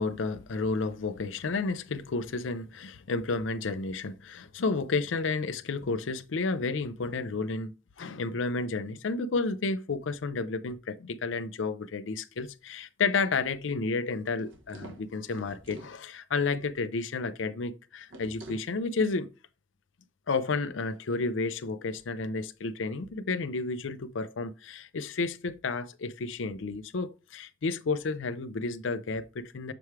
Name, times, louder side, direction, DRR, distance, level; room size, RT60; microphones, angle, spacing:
voice 1, 0.0-7.7 8.0-19.3 20.3-29.7, left 4 dB, 75° left, 0.5 m, -31 dB
sound 1, 14.3-16.0 18.1-18.7, right 2 dB, 90° right, 1.2 m, -47 dB
6.9 x 4.7 x 3.2 m
head